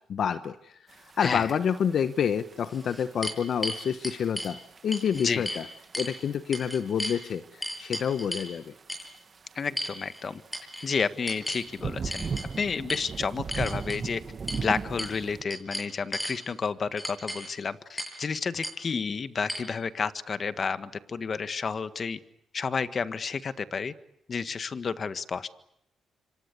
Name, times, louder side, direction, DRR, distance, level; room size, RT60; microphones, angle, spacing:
voice 1, 0.1-5.7 6.0-8.7, left 7 dB, 65° left, 11 dB, 1.1 m, -28 dB
sound 1, 0.9-15.4, right 5 dB, 45° right, 1.7 m, -40 dB
sound 2, 2.6-4.5 4.9-5.6 5.9-6.2 6.5-7.2 7.6-8.5 8.9-9.1 9.8-10.2 10.5-10.9 11.3-11.7 12.1-12.5 12.9-13.0 13.5-14.0 14.5-14.6 15.0-15.2 15.5-16.4 17.0-17.5 18.0-18.2 18.6-18.7 19.5-19.6, equal, 5° left, 7.8 m, -35 dB
voice 2, 5.1-5.4 9.5-10.4 10.8-12.2 12.6-14.2 14.5-22.2 22.5-23.9 24.3-25.5, left 5 dB, 45° left, 12 dB, 1.6 m, -31 dB
27.5 x 25.5 x 8.4 m, 0.78 s
cardioid pair, 80°, 0 cm